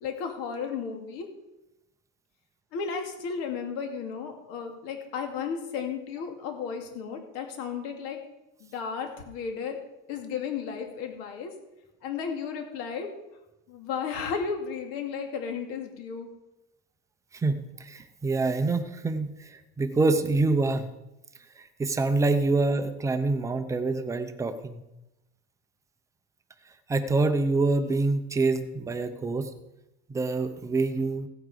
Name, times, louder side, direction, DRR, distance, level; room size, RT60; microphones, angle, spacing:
voice 1, 0.0-1.3 2.7-8.2 8.6-9.8 10.1-11.5 12.0-13.1 13.7-16.3, left 6 dB, 50° left, 4 dB, 2.5 m, -34 dB
voice 2, 17.3-20.9 21.6-24.8 26.9-29.5 30.1-31.3, right 3 dB, 10° right, 9 dB, 0.7 m, -26 dB
16.5 x 8.6 x 5.0 m, 0.95 s
supercardioid pair, 165°, 30 cm